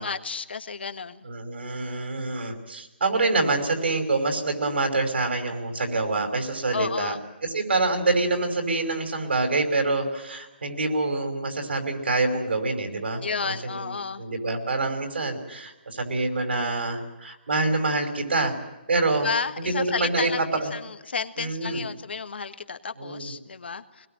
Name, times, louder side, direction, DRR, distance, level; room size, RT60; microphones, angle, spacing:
voice 1, 0.0-1.3 6.7-7.2 13.2-14.2 19.2-20.4 20.7-24.1, left 5 dB, 75° left, 11 dB, 1.6 m, -32 dB
voice 2, 1.2-7.2 7.4-13.9 14.2-18.6 18.9-19.3 19.6-20.7 21.4-21.8 23.0-23.3, right 3 dB, 80° right, 6 dB, 5.6 m, -26 dB
23.0 x 21.0 x 9.0 m, 1.0 s
hypercardioid pair, 175°, 6 cm